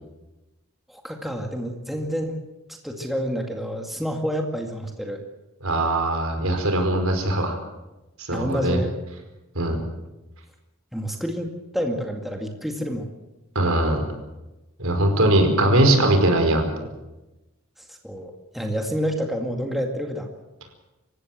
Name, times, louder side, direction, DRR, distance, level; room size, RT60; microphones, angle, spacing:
voice 1, 0.9-2.4 2.7-5.2 8.3-8.9 9.7-9.9 10.9-11.5 11.7-13.1 17.9-20.3, equal, ahead, 2 dB, 2.1 m, -28 dB
voice 2, 5.6-7.6 8.2-8.8 9.5-9.8 13.5-14.0 14.8-16.7, right 1 dB, 70° right, 5 dB, 4.9 m, -20 dB
27.0 x 16.0 x 7.7 m, 1.0 s
head